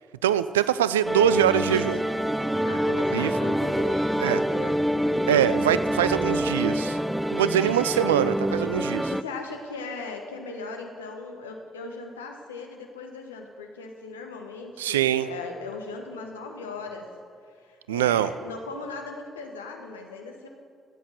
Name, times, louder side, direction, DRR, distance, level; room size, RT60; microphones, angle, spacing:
voice 1, 0.2-2.0 3.1-3.3 4.2-4.4 5.3-7.0 7.3-9.1 14.8-15.3 17.9-18.3, right 11 dB, 80° right, 15 dB, 0.3 m, -23 dB
sound 1, 1.1-9.2, equal, 5° right, 0.4 m, -26 dB
voice 2, 2.6-4.8 9.1-17.1 17.6-20.5, left 4 dB, 85° left, 3 dB, 1.0 m, -38 dB
13.5 x 8.0 x 6.6 m, 2.1 s
figure-of-eight pair, 45°, 0 cm